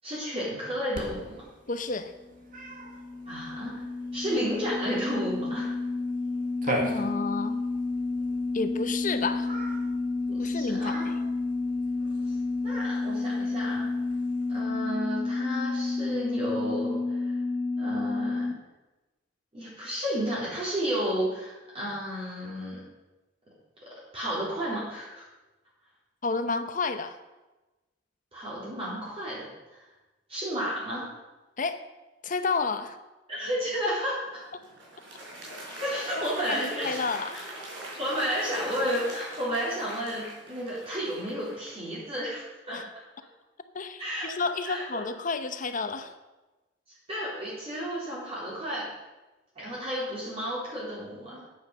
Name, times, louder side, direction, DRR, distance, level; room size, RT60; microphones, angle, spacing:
voice 1, 0.0-1.4 3.3-3.8 4.1-5.7 10.3-11.1 12.6-13.9 14.5-17.3 17.8-18.5 19.5-22.8 24.1-25.2 28.3-29.4 30.3-31.1 33.3-34.2 35.8-37.0 37.3-37.4 37.8-42.8 44.0-44.3 44.6-45.0 47.1-48.9 49.6-51.5, equal, 30° right, -8 dB, 4.0 m, -32 dB
Cat, 0.9-14.6, right 1 dB, 45° right, 2.0 m, -41 dB
voice 2, 1.7-2.1 6.7-7.6 8.5-9.5 10.4-11.1 26.2-27.2 31.6-31.8 32.2-33.0 35.7-35.8 36.2-37.5 42.7-42.8 43.7-46.1, left 4 dB, 45° left, 10 dB, 0.8 m, -31 dB
sound 1, 2.3-18.5, left 3 dB, 25° left, 1.4 m, -30 dB
Applause, 34.3-41.9, right 1 dB, 90° right, 4.6 m, -42 dB
9.7 x 9.5 x 6.6 m, 1.1 s
head